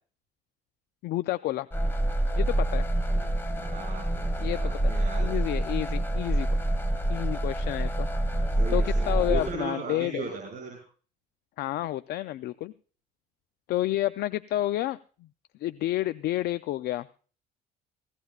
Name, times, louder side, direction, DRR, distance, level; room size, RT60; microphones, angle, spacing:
voice 1, 1.0-1.7 2.4-2.8 4.4-4.9 5.2-6.5 7.1-8.1 8.7-10.2 11.6-12.7 13.7-15.0 15.6-17.1, left 15 dB, 70° left, 13 dB, 0.5 m, -30 dB
sound 1, 1.7-9.6, right 1 dB, 15° left, 1.7 m, -27 dB
voice 2, 3.5-5.4 8.6-10.8, right 4 dB, 50° right, 0 dB, 5.0 m, -37 dB
17.0 x 16.0 x 2.4 m, 0.41 s
cardioid pair, 110°, 17 cm